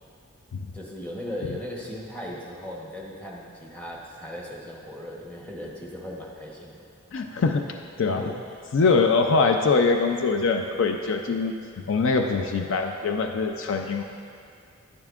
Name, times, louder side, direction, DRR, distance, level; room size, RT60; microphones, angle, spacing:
voice 1, 0.7-6.9 8.2-8.6, left 1 dB, 5° left, -3 dB, 1.1 m, -37 dB
voice 2, 7.1-8.2 8.7-11.6 11.9-14.0, left 4 dB, 60° left, 4 dB, 0.4 m, -23 dB
10.5 x 9.8 x 2.4 m, 2.4 s
head